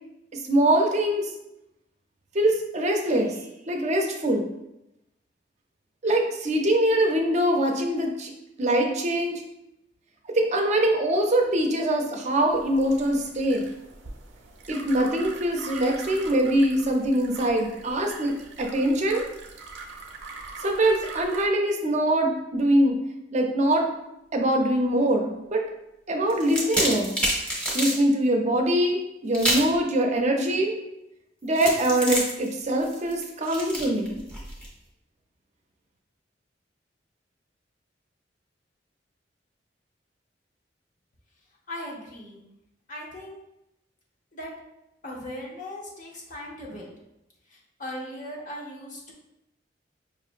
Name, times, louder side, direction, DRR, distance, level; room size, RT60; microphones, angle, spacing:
voice 1, 0.3-1.3 2.3-3.4 3.7-4.5 6.0-8.3 8.6-9.4 10.3-13.6 14.7-19.2 20.6-23.0 23.3-23.9 24.3-25.7 26.1-27.1 27.7-30.8 31.4-34.2, right 1 dB, 40° right, 2 dB, 0.6 m, -23 dB
sound 1, 12.5-21.5, right 3 dB, 80° right, 0.6 m, -42 dB
sound 2, 26.3-28.0 29.3-29.8 31.6-34.7, equal, 5° left, 1.0 m, -28 dB
voice 2, 41.7-42.4 42.9-43.4 44.3-44.5 45.0-46.9 47.5-49.1, left 1 dB, 45° left, -3 dB, 0.8 m, -38 dB
5.4 x 2.8 x 2.5 m, 0.88 s
head